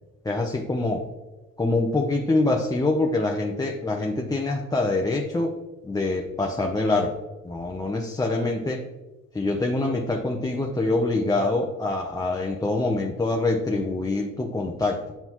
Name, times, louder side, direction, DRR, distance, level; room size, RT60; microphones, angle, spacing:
voice 1, 0.2-1.1 1.6-5.5 5.8-8.9 9.3-15.1, left 2 dB, 10° left, 1 dB, 0.7 m, -25 dB
7.7 x 5.7 x 3.0 m, 1.1 s
cardioid pair, 90°, 30 cm